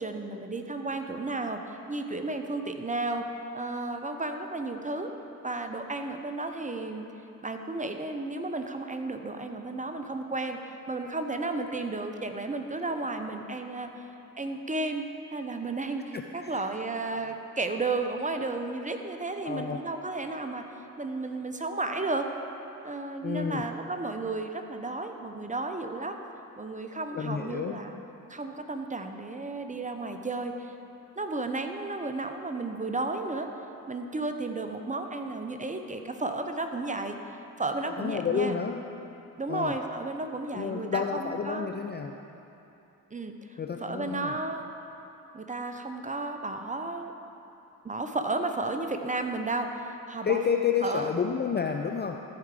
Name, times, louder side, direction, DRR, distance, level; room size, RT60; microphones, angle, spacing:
voice 1, 0.0-3.3 3.5-5.1 5.4-7.0 7.4-10.6 10.9-14.0 14.4-20.7 21.0-22.3 22.8-26.2 26.6-28.0 28.3-30.7 31.2-33.5 33.9-37.2 37.6-38.6 39.4-41.7 43.1-44.7 45.3-47.1 47.8-50.4 50.8-51.1, right 2 dB, 15° right, 6 dB, 0.8 m, -33 dB
voice 2, 16.1-16.6 19.4-19.8 23.2-23.7 27.1-27.8 38.0-38.8 39.5-39.8 40.5-42.2 43.6-44.4 50.2-52.2, left 6 dB, 25° left, 4 dB, 0.4 m, -30 dB
14.0 x 4.8 x 4.9 m, 2.9 s
hypercardioid pair, 40°, 45 cm